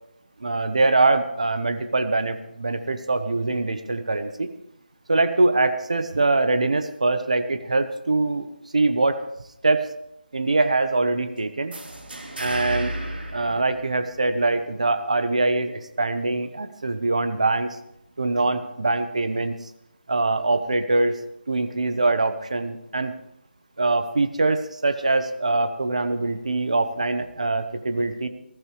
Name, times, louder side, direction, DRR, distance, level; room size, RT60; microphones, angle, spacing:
voice 1, 0.4-4.5 5.1-8.5 8.7-9.2 9.6-9.9 10.3-11.8 12.4-12.9 13.3-17.8 18.2-19.5 20.1-21.2 21.5-23.1 23.8-28.3, right 2 dB, 40° right, 10 dB, 1.0 m, -23 dB
sound 1, 11.7-14.4, right 1 dB, 65° right, 3.8 m, -33 dB
19.5 x 14.5 x 3.3 m, 0.78 s
figure-of-eight pair, 180°, 6 cm